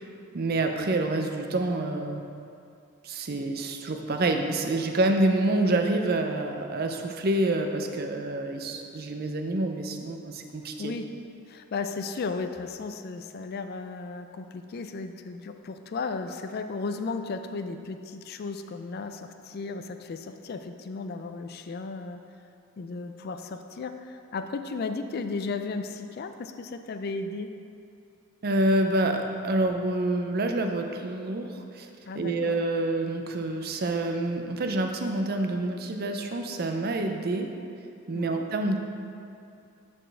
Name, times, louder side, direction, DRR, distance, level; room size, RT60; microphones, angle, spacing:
voice 1, 0.3-2.2 3.0-10.9 28.4-31.9 32.1-37.5 38.1-38.8, right 2 dB, 45° right, 5 dB, 0.5 m, -27 dB
voice 2, 11.5-22.2 22.8-27.5 32.1-32.6 38.1-38.4, left 4 dB, 45° left, 7 dB, 0.3 m, -35 dB
11.5 x 4.3 x 3.3 m, 2.6 s
head